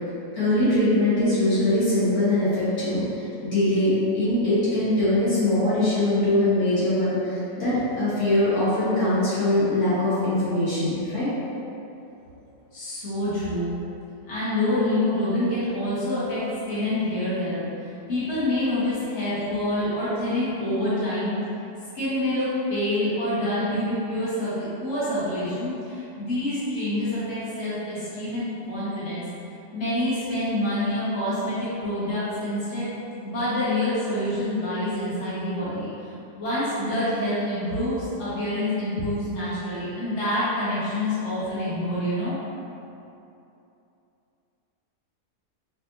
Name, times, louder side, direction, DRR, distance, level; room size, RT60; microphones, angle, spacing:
voice 1, 0.3-11.3, left 1 dB, 70° left, -12 dB, 1.8 m, -22 dB
voice 2, 12.7-13.7 14.2-16.4 16.7-17.6 18.1-21.4 21.9-29.2 29.7-32.9 33.2-42.4, left 1 dB, 50° left, -12 dB, 1.5 m, -27 dB
5.6 x 2.5 x 2.6 m, 2.8 s
omnidirectional pair, 1.7 m